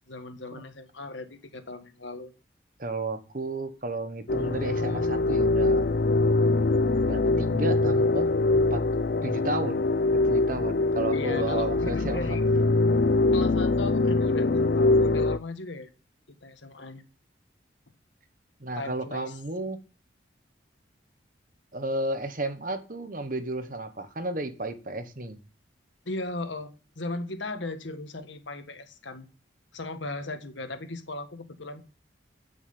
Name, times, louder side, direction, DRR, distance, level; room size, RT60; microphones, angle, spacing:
voice 1, 0.1-2.3 11.1-12.4 13.3-15.9 16.4-17.0 18.8-19.3 26.0-29.3 29.7-31.8, left 2 dB, 80° left, 1.6 m, -37 dB
voice 2, 2.8-5.9 7.1-8.3 8.7-8.8 9.2-12.3 18.6-19.8 21.7-25.4, right 2 dB, 45° right, 1.2 m, -33 dB
sound 1, 4.3-15.4, left 2 dB, 55° left, 0.4 m, -23 dB
15.5 x 6.4 x 5.4 m
head